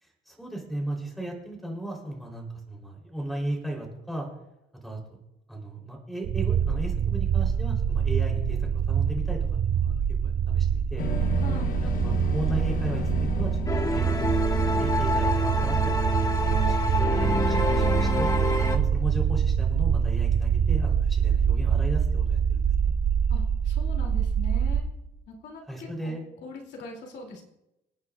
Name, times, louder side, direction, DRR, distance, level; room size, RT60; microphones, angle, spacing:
voice 1, 0.0-4.3 4.8-5.2 5.5-11.1 11.8-16.0 16.5-18.3 18.7-22.9 25.7-26.2, right 1 dB, ahead, -1 dB, 3.5 m, -36 dB
sound 1, 6.2-24.8, right 7 dB, 80° right, 2.0 m, -25 dB
sound 2, 11.0-14.9, left 6 dB, 50° left, 1.1 m, -34 dB
voice 2, 11.4-11.8 23.3-24.8 25.3-27.4, left 4 dB, 70° left, 0 dB, 2.8 m, -42 dB
sound 3, 13.7-18.8, left 2 dB, 20° left, 1.3 m, -27 dB
27.0 x 9.5 x 2.4 m, 0.89 s
cardioid pair, 145°, 18 cm